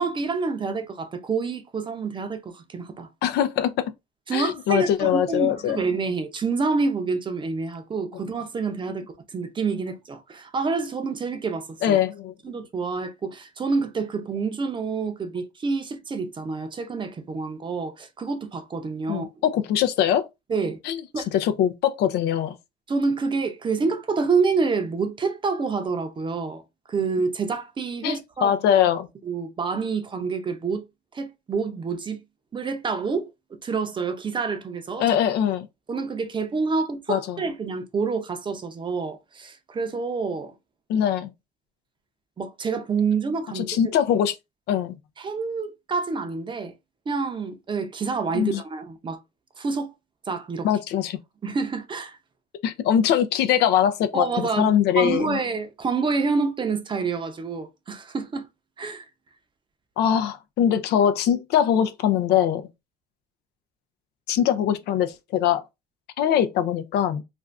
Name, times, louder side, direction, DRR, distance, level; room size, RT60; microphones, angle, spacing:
voice 1, 0.0-3.1 4.3-12.0 12.4-19.3 20.5-20.8 21.1-21.3 22.9-26.6 26.9-28.5 29.2-30.8 31.1-32.2 32.5-33.3 33.6-35.0 35.9-40.5 42.4-43.7 45.2-46.7 47.1-49.2 49.6-49.9 50.3-50.7 51.4-52.2 54.1-58.4 58.8-59.0, right 4 dB, 30° right, 0.6 m, -27 dB
voice 2, 3.2-3.7 4.3-5.8 11.8-12.3 19.1-20.3 20.8-22.5 28.0-29.1 35.0-35.7 37.1-37.4 40.9-41.3 43.5-44.3 44.7-45.0 48.3-48.6 50.6-51.2 52.6-55.4 60.0-62.7 64.3-65.6 66.2-67.2, left 9 dB, 75° left, 0.5 m, -22 dB
2.5 x 2.3 x 3.3 m
cardioid pair, 110°, 17 cm